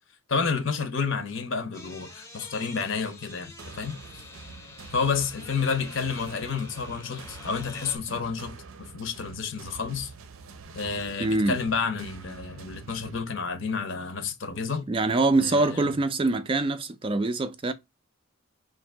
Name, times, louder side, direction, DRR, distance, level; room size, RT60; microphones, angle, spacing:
voice 1, 0.3-4.2 4.9-10.1 10.7-14.9 15.4-15.9, left 5 dB, 60° left, 0.7 m, -30 dB
sound 1, 1.7-8.0, left 3 dB, 15° left, 0.6 m, -46 dB
sound 2, 3.6-13.2, right 4 dB, 80° right, 0.6 m, -46 dB
voice 2, 11.2-11.6 14.9-17.7, right 2 dB, 25° right, 0.3 m, -24 dB
2.8 x 2.6 x 4.3 m
head